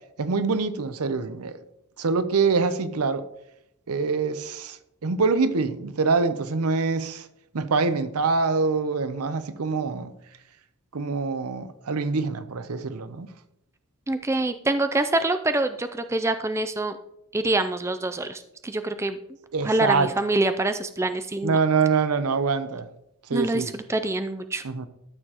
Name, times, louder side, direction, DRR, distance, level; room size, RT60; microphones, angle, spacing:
voice 1, 0.2-1.6 2.0-3.2 3.9-7.3 7.5-10.1 10.9-13.3 19.5-20.1 21.4-22.9 23.3-23.7 24.6-24.9, right 4 dB, 85° right, 0.7 m, -25 dB
voice 2, 14.1-17.0 17.3-19.2 19.6-21.6 23.3-24.6, right 2 dB, 10° right, 0.3 m, -25 dB
13.0 x 6.7 x 2.9 m
head